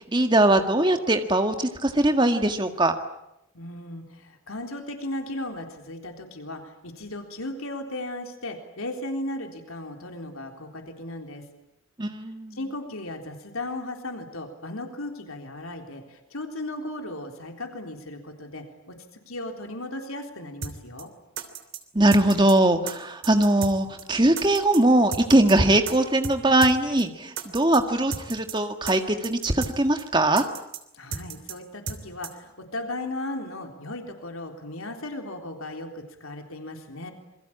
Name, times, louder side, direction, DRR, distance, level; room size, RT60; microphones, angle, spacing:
voice 1, 0.1-2.9 12.0-12.6 22.0-30.5, right 1 dB, 20° right, 6 dB, 1.7 m, -21 dB
voice 2, 3.5-11.5 12.5-19.0 19.3-21.1 30.9-37.1, left 1 dB, 90° left, 4 dB, 3.8 m, -36 dB
sound 1, 20.6-20.7 21.0-21.1 21.4-21.8 22.1-22.5 22.9-23.0 23.2-23.7 24.0-24.1 24.4-24.8 25.1-25.5 25.9-26.0 26.2-26.4 26.6-26.7 27.0-27.1 27.4-27.8 28.1-28.5 28.9-29.0 29.2-29.7 30.0-30.1 30.4-30.8 31.1-31.5 31.9-32.0 32.2-32.3, right 6 dB, 65° right, 3.1 m, -34 dB
27.0 x 22.5 x 8.8 m, 0.84 s
head